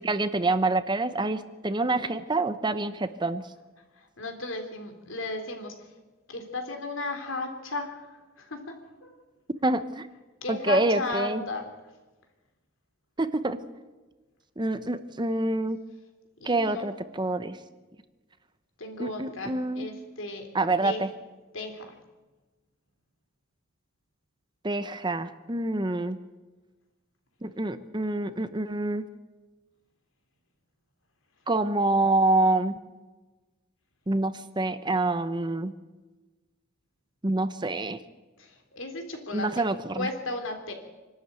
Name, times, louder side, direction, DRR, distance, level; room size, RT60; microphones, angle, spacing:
voice 1, 0.0-3.4 9.6-10.1 10.5-11.4 13.2-13.6 14.6-15.8 16.4-17.6 19.0-19.9 20.5-21.1 24.6-26.2 27.4-29.0 31.5-32.8 34.1-35.7 37.2-38.0 39.3-40.1, right 2 dB, 20° right, 12 dB, 0.8 m, -26 dB
voice 2, 4.0-5.9 6.3-8.1 8.4-8.8 9.0-9.2 10.4-11.7 16.4-16.8 18.8-20.5 20.8-21.0 21.5-22.0 38.4-39.6 39.9-40.7, left 2 dB, 75° left, 5 dB, 3.5 m, -35 dB
25.5 x 12.5 x 9.0 m, 1.2 s
head